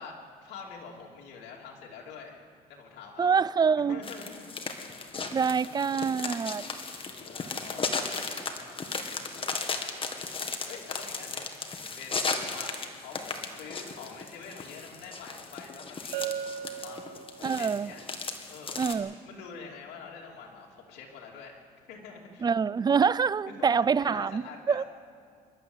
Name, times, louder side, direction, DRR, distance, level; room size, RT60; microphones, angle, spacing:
voice 1, 0.0-2.4 2.7-3.4 3.7-4.7 5.6-6.0 7.0-8.8 9.0-10.2 10.7-16.4 16.8-18.0 18.5-18.8 19.3-21.6 21.9-22.5 23.5-24.8, left 5 dB, 80° left, -2 dB, 2.9 m, -46 dB
voice 2, 3.2-4.0 5.3-6.6 17.4-17.9 18.8-19.1 22.4-24.8, right 6 dB, 25° right, 20 dB, 0.4 m, -26 dB
sound 1, 4.0-18.9, left 4 dB, 30° left, 1.9 m, -36 dB
Bell, 16.1-17.8, right 9 dB, 70° right, 1.2 m, -36 dB
27.5 x 11.5 x 8.0 m, 2.2 s
cardioid pair, 110°, 17 cm